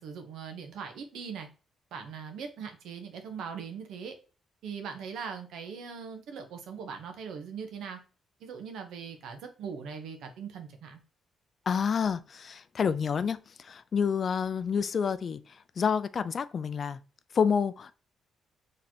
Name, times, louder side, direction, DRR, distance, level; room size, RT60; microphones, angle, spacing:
voice 1, 0.0-1.5 1.9-4.2 4.6-8.0 8.4-11.0, right 6 dB, 85° right, 0.9 m, -40 dB
voice 2, 11.7-17.0 17.3-17.9, left 6 dB, 50° left, 0.3 m, -29 dB
4.1 x 3.2 x 2.8 m
cardioid pair, 95°, 0 cm